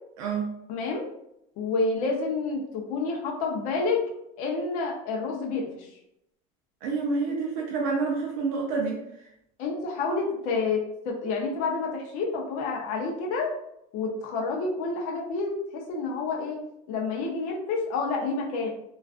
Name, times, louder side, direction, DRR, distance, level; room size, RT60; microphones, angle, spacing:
voice 1, 0.2-0.5 6.8-9.3, right 4 dB, 70° right, -1 dB, 0.5 m, -28 dB
voice 2, 0.7-1.0 1.6-4.0 4.4-5.9 9.6-13.5 13.9-16.6 16.9-18.7, left 4 dB, 50° left, 0 dB, 0.6 m, -29 dB
2.4 x 2.3 x 2.3 m, 0.80 s
cardioid pair, 160°, 18 cm